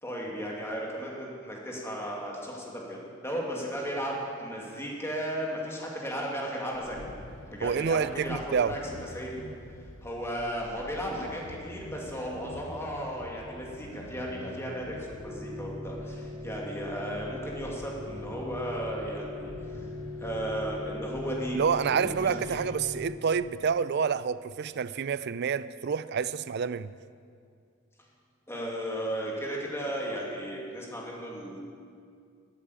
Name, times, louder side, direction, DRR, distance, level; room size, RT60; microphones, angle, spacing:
voice 1, 0.0-7.1 7.5-9.4 10.0-19.8 20.2-21.6 21.9-22.6 28.5-31.6, equal, 15° left, 2.3 m, -35 dB
sound 1, 6.7-22.7, left 2 dB, 65° left, 0.9 m, -48 dB
voice 2, 7.6-8.8 21.5-26.9, right 6 dB, 55° right, 0.4 m, -28 dB
sound 2, 15.2-23.2, left 2 dB, 15° right, 1.0 m, -40 dB
13.0 x 8.4 x 8.5 m
head